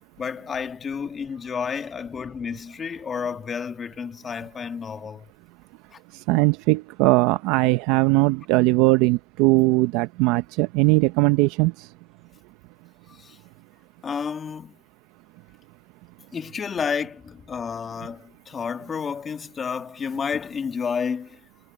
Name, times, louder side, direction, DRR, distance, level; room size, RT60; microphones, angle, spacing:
voice 1, 0.2-5.3 5.9-6.0 13.1-13.4 14.0-14.8 16.3-21.4, left 6 dB, 30° left, 1.9 m, -31 dB
voice 2, 6.3-11.7, right 21 dB, 70° right, 0.7 m, -19 dB
supercardioid pair, 105°, 0 cm